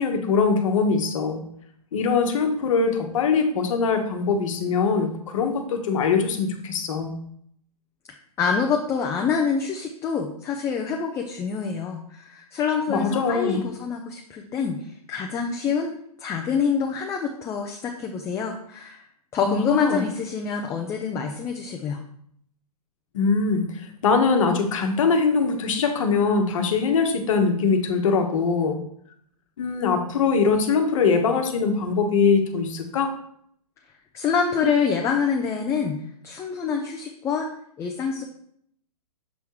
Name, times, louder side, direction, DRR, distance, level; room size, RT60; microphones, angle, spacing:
voice 1, 0.0-1.4 1.9-7.1 12.9-13.6 19.4-20.0 23.1-28.8 29.6-33.1, left 5 dB, 55° left, 5 dB, 1.1 m, -22 dB
voice 2, 8.4-14.8 15.1-15.9 16.2-19.0 19.3-22.0 34.1-36.0 36.2-37.5 37.8-38.2, left 6 dB, 15° left, 3 dB, 0.5 m, -26 dB
7.2 x 3.4 x 4.7 m, 0.67 s
hypercardioid pair, 125°, 20 cm